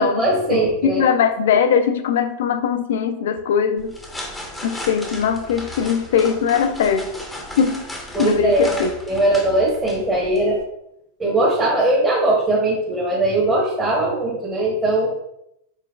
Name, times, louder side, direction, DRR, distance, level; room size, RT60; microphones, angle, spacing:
voice 1, 0.0-1.0 8.1-10.6 11.2-15.1, right 2 dB, 10° right, -6 dB, 1.1 m, -20 dB
voice 2, 0.5-3.9 4.6-7.1 7.6-7.8 8.2-8.9, left 7 dB, 60° left, 9 dB, 0.4 m, -20 dB
sound 1, 3.8-10.6, left 1 dB, 5° left, 0.8 m, -35 dB
4.6 x 4.2 x 2.3 m, 0.80 s
figure-of-eight pair, 90°, 0 cm